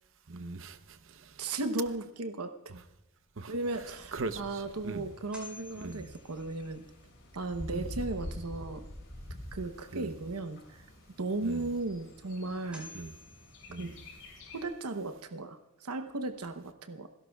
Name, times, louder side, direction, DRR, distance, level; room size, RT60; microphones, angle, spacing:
voice 1, 0.3-1.5 3.4-3.5 4.1-5.1 5.8-6.1 7.7-7.9 9.9-10.1 11.4-11.7 12.9-13.1 13.7-14.0, right 3 dB, 60° right, 0.8 m, -40 dB
voice 2, 1.4-2.8 3.5-6.8 7.3-8.8 9.5-10.8 11.2-12.9 13.8-13.9 14.5-17.1, right 2 dB, 90° right, 0.9 m, -36 dB
Bird, 3.6-14.7, left 1 dB, 55° left, 6.3 m, -47 dB
sound 1, 5.3-6.9 12.0-12.1 12.7-14.4, left 2 dB, 5° right, 4.9 m, -52 dB
29.5 x 12.0 x 2.3 m
head